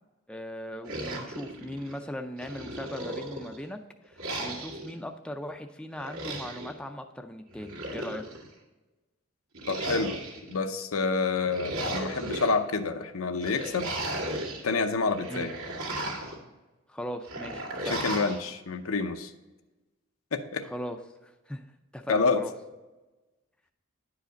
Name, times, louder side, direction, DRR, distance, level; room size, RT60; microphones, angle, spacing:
voice 1, 0.3-3.8 4.0-8.2 15.3-15.5 16.9-18.0 20.6-21.0 21.2-21.6 21.9-22.5, equal, 5° left, 5 dB, 0.4 m, -39 dB
sound 1, 0.8-2.0 2.4-3.6 4.2-4.9 6.0-6.7 7.5-8.5 9.5-10.6 11.3-12.5 13.4-14.6 15.0-16.4 17.2-18.4, right 1 dB, 90° right, 2.0 m, -35 dB
voice 2, 9.7-10.2 10.5-13.9 14.6-15.5 17.8-19.3 20.3-20.7 22.1-22.4, left 4 dB, 90° left, 7 dB, 0.7 m, -28 dB
10.0 x 4.9 x 5.1 m, 1.1 s
head